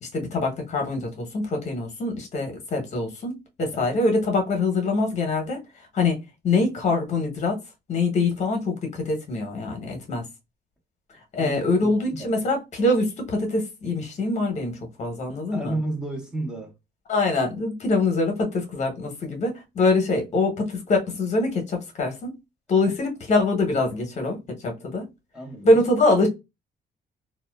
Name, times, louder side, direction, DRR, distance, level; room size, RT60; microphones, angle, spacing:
voice 1, 0.0-5.6 5.9-6.2 6.4-7.6 7.9-10.2 11.3-15.7 17.1-22.3 22.7-25.0 25.6-26.3, left 2 dB, 40° left, 0.8 m, -24 dB
voice 2, 11.4-12.3 15.5-16.7 22.8-22.9 25.3-25.8, right 2 dB, 5° right, 0.6 m, -32 dB
2.6 x 2.1 x 2.2 m
cardioid pair, 165°, 19 cm